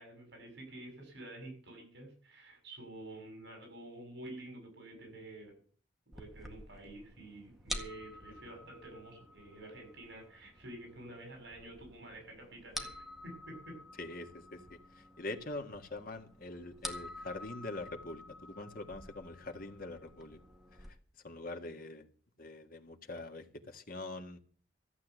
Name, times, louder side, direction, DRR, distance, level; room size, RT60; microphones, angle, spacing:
voice 1, 0.0-5.6 6.1-13.8, right 1 dB, 60° right, 7.0 m, -49 dB
sound 1, 6.1-20.9, equal, ahead, 1.8 m, -49 dB
voice 2, 14.0-20.4 20.8-21.0 21.2-22.1 22.4-24.4, left 2 dB, 50° left, 1.8 m, -44 dB
14.5 x 8.3 x 8.2 m
head